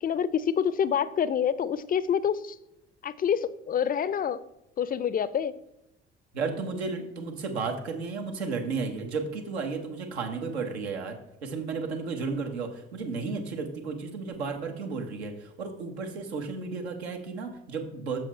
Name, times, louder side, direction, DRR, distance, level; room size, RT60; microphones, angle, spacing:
voice 1, 0.0-2.6 3.0-4.4 4.8-5.5, left 8 dB, 25° left, 17 dB, 0.5 m, -27 dB
voice 2, 6.3-18.2, right 4 dB, 80° right, 4 dB, 1.2 m, -33 dB
7.6 x 6.4 x 4.4 m, 0.86 s
figure-of-eight pair, 50°, 32 cm